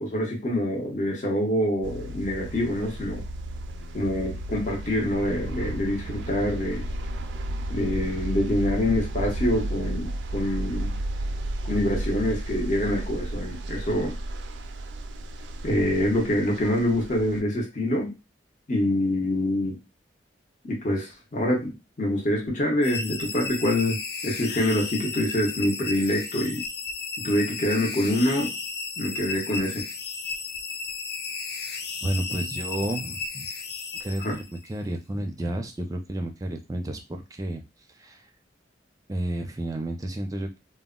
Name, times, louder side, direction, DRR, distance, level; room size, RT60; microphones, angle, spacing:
voice 1, 0.0-3.2 3.9-6.8 7.7-10.9 11.6-14.1 15.6-18.2 18.7-19.8 20.7-26.6 27.2-28.5 29.0-29.8 34.2-34.4, left 1 dB, 45° left, -1 dB, 0.8 m, -26 dB
sound 1, 1.8-17.4, right 1 dB, 85° right, 0.4 m, -33 dB
sound 2, 22.8-34.7, left 4 dB, 65° left, 0.4 m, -34 dB
voice 2, 32.0-33.5 34.0-34.4 34.7-37.6 38.0-38.2 39.1-40.6, right 1 dB, 20° right, 4 dB, 0.5 m, -31 dB
2.1 x 2.0 x 3.6 m, 0.24 s
head